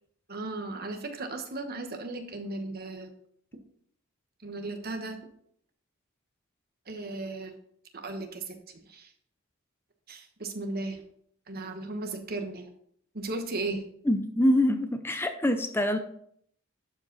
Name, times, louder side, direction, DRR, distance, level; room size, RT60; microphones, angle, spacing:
voice 1, 0.3-3.1 4.4-5.2 6.9-7.6 7.9-8.6 8.9-9.1 10.1-11.0 11.5-12.7 13.1-13.8, right 2 dB, 45° right, 5 dB, 1.2 m, -36 dB
voice 2, 14.1-16.0, left 1 dB, 10° left, 7 dB, 0.5 m, -25 dB
11.5 x 5.2 x 4.0 m, 0.67 s
head